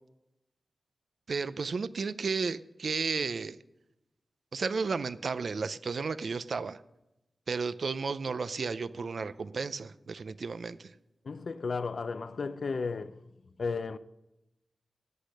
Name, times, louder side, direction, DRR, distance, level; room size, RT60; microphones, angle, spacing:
voice 1, 1.3-3.6 4.5-6.8 7.5-10.9, right 4 dB, 70° right, 0.5 m, -33 dB
voice 2, 11.2-13.2 13.6-14.0, left 4 dB, 70° left, 0.5 m, -34 dB
18.0 x 8.3 x 6.5 m
cardioid pair, 60°, 0 cm